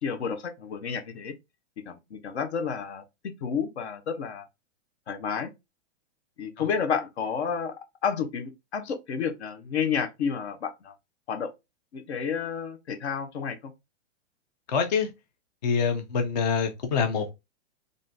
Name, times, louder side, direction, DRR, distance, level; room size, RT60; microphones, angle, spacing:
voice 1, 0.0-1.3 1.8-3.0 3.4-4.4 5.1-5.5 6.4-7.7 8.0-10.9 11.3-11.5 11.9-13.7, left 6 dB, 70° left, 0.8 m, -30 dB
voice 2, 14.7-15.1 15.6-17.3, left 6 dB, 40° left, 0.4 m, -25 dB
3.6 x 2.5 x 2.5 m
supercardioid pair, 175°, 34 cm